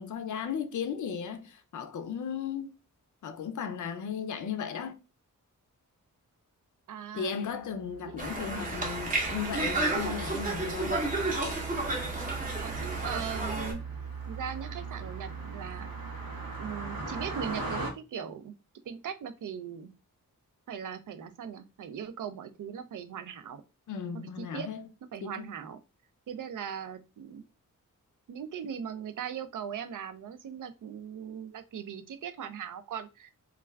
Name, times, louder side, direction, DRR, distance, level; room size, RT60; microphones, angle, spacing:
voice 1, 0.0-2.7 3.2-5.0 7.1-11.0 23.9-24.8 25.2-25.3, left 7 dB, 65° left, 0.5 m, -35 dB
voice 2, 6.9-7.4 8.0-8.2 12.6-13.8 14.3-16.3 16.6-18.5 18.9-19.9 20.7-23.6 24.1-24.7 25.1-25.8 26.3-27.4 28.3-33.3, right 8 dB, 70° right, 0.5 m, -39 dB
Car passing by, 7.8-17.9, right 4 dB, 90° right, 0.8 m, -39 dB
Conversation, 8.2-13.7, right 2 dB, 25° right, 0.7 m, -32 dB
2.3 x 2.2 x 3.2 m
wide cardioid pair, 140°, 33 cm